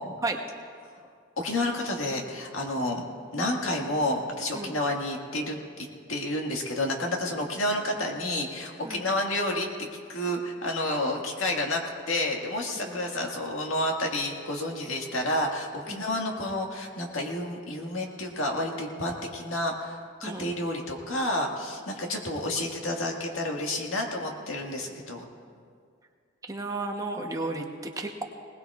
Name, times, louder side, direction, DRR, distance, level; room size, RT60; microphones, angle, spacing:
voice 1, 1.4-3.0 3.3-25.2, left 1 dB, 75° left, 1 dB, 1.8 m, -30 dB
voice 2, 26.4-28.2, right 2 dB, 15° right, 3 dB, 0.9 m, -33 dB
20.5 x 19.0 x 2.4 m, 2.2 s
head